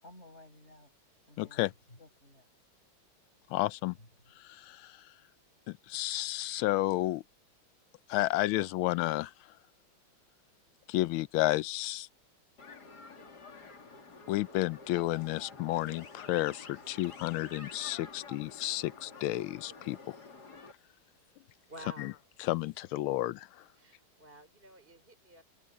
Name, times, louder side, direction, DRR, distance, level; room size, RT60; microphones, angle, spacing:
voice 1, 0.0-0.9 1.3-2.5 4.0-4.1, left 1 dB, 30° left, 7.2 m, -55 dB
voice 2, 1.4-1.7 3.5-4.0 4.4-5.0 5.7-7.2 8.1-9.3 10.9-12.1 14.3-20.2 22.0-22.1 22.4-23.5, left 17 dB, 80° left, 1.4 m, -31 dB
sound 1, 12.6-20.7, left 4 dB, 50° left, 3.2 m, -50 dB
voice 3, 21.7-22.2 23.7-25.4, right 1 dB, 25° right, 5.7 m, -51 dB
omnidirectional pair, 2.3 m